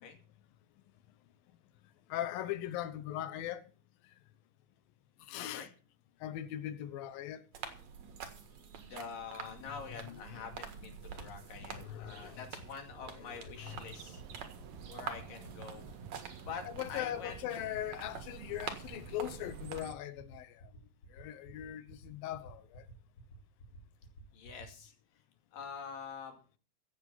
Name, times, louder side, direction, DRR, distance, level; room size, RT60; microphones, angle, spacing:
voice 1, 2.1-3.7 5.3-5.7 6.2-7.4 9.6-10.9 11.6-12.5 13.1-14.0 14.9-15.3 16.6-20.6 21.1-22.8, left 12 dB, 90° left, 2.7 m, -41 dB
voice 2, 5.4-5.7 8.8-14.2 14.9-15.9 16.4-17.4 18.4-18.5 24.3-24.9 25.5-26.4, left 6 dB, 75° left, 4.0 m, -46 dB
sound 1, 7.5-19.8, right 7 dB, 55° right, 2.7 m, -47 dB
sound 2, 11.1-24.6, left 2 dB, 35° left, 5.5 m, -53 dB
sound 3, 13.7-19.9, right 8 dB, 85° right, 1.2 m, -52 dB
15.5 x 8.0 x 5.6 m
omnidirectional pair, 4.0 m